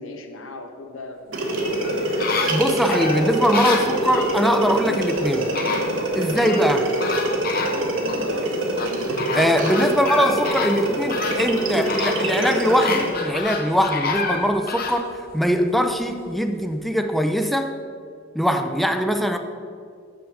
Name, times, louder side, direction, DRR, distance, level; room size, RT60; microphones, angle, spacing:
voice 1, 0.0-2.3 9.7-10.1 10.8-11.1, left 2 dB, 90° left, 5 dB, 1.0 m, -38 dB
sound 1, 1.3-1.8 2.1-4.3 4.8-5.1 6.3-7.0 7.5-10.3, right 5 dB, 45° right, 1.0 m, -37 dB
sound 2, 1.3-13.2, right 1 dB, 70° right, 1.3 m, -25 dB
sound 3, 1.5-4.4 5.2-5.3 5.5-6.7 7.0-8.2 8.8-15.0 15.5-15.6, left 4 dB, 50° left, 0.9 m, -28 dB
voice 2, 2.5-5.5 6.2-6.9 9.3-15.1 15.3-17.8 18.3-19.4, equal, ahead, 6 dB, 0.5 m, -21 dB
7.6 x 6.3 x 6.2 m, 2.3 s
head